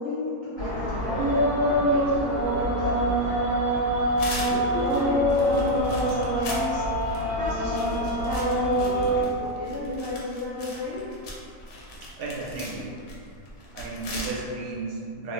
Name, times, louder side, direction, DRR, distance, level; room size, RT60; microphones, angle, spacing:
voice 1, 0.0-3.4 3.9-6.8 7.3-11.0, left 2 dB, 65° left, -11 dB, 0.6 m, -34 dB
sound 1, 0.6-9.2, equal, 60° right, 1.3 m, -24 dB
sound 2, 4.2-14.3, left 1 dB, 85° left, 1.1 m, -40 dB
voice 2, 12.0-12.9 13.7-15.3, right 3 dB, 80° right, -3 dB, 1.2 m, -34 dB
2.9 x 2.0 x 3.0 m, 2.3 s
omnidirectional pair, 1.6 m